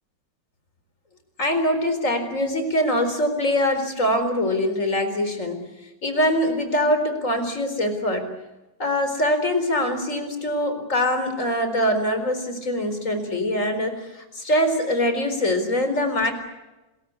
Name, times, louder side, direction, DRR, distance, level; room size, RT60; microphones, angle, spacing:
voice 1, 1.4-5.6 6.0-8.3 8.8-16.3, left 1 dB, 40° left, 7 dB, 4.6 m, -23 dB
28.0 x 21.5 x 8.4 m, 1.0 s
omnidirectional pair, 2.1 m